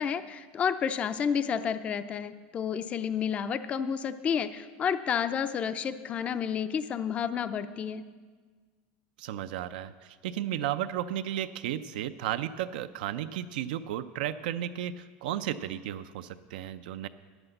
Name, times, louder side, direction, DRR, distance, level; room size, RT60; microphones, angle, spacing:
voice 1, 0.0-8.0, left 7 dB, 25° left, 12 dB, 0.4 m, -30 dB
voice 2, 9.2-17.1, right 11 dB, 85° right, 10 dB, 0.4 m, -34 dB
9.7 x 8.0 x 7.8 m, 1.5 s
supercardioid pair, 145°, 5 cm